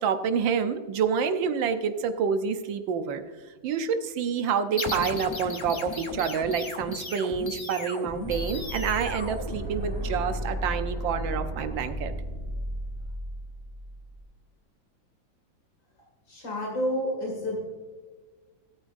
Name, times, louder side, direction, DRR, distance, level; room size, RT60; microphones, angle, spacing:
voice 1, 0.0-3.2 3.6-12.1, right 6 dB, 80° right, 8 dB, 1.6 m, -28 dB
sound 1, 4.8-10.2, left 2 dB, 40° left, 0.4 m, -36 dB
sound 2, 8.2-14.2, equal, 20° right, 2.2 m, -34 dB
voice 2, 16.3-17.6, equal, 80° left, -2 dB, 3.0 m, -29 dB
17.0 x 8.8 x 2.6 m, 1.4 s
omnidirectional pair, 2.1 m